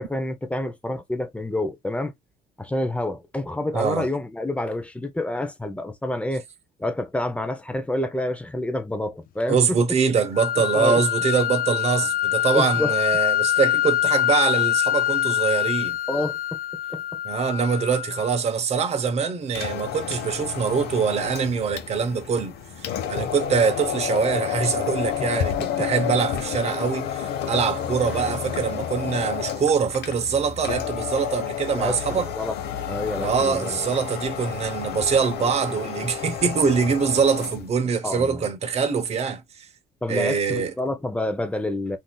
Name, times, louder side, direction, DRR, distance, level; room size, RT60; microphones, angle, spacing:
voice 1, 0.0-2.1 2.6-6.4 6.8-9.8 10.7-11.0 12.5-12.9 16.1-16.4 16.9-17.2 25.2-25.3 31.7-32.5 32.9-33.8 38.0-38.5 40.0-42.0, left 1 dB, 5° left, 0.6 m, -28 dB
voice 2, 3.7-4.1 9.5-16.0 17.2-22.5 22.8-32.3 33.2-39.4 40.1-40.7, right 6 dB, 40° right, 0.7 m, -24 dB
sound 1, 10.3-18.4, left 14 dB, 60° left, 0.4 m, -24 dB
sound 2, 19.4-37.7, left 9 dB, 75° left, 0.8 m, -30 dB
3.6 x 2.6 x 2.3 m
cardioid pair, 110°, 17 cm